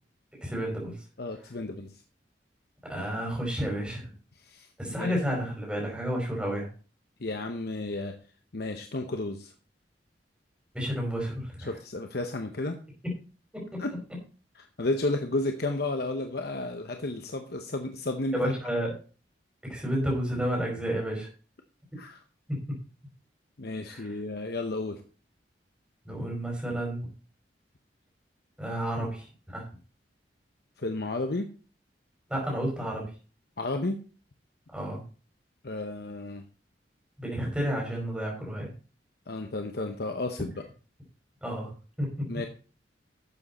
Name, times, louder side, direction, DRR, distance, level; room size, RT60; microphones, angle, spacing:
voice 1, 0.4-1.0 2.9-4.1 4.8-6.7 10.7-11.7 13.5-13.8 18.3-18.9 19.6-21.3 22.5-22.6 23.9-24.2 26.0-27.1 28.6-29.6 32.3-33.1 34.7-35.0 37.2-38.7 41.4-42.3, equal, 5° right, -2 dB, 5.0 m, -31 dB
voice 2, 1.2-1.9 4.4-5.2 7.2-8.2 8.5-9.5 11.7-12.8 13.8-13.9 14.6-18.5 22.0-22.2 23.6-25.0 30.8-31.5 33.6-34.0 35.6-36.4 39.3-40.5 42.3-42.5, left 2 dB, 60° left, 5 dB, 0.9 m, -32 dB
12.0 x 7.5 x 4.2 m, 0.36 s
head